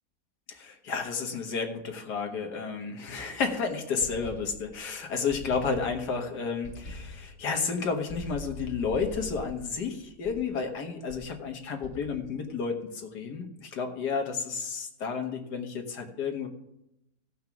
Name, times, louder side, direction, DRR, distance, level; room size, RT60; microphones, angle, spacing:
voice 1, 0.5-16.5, left 5 dB, 85° left, 3 dB, 2.0 m, -31 dB
sound 1, 4.0-4.9 5.3-6.2 6.6-7.4 8.1-10.6 11.1-11.4 11.8-12.4, left 2 dB, 50° left, 2.0 m, -43 dB
15.5 x 5.6 x 5.9 m, 0.84 s
omnidirectional pair, 1.7 m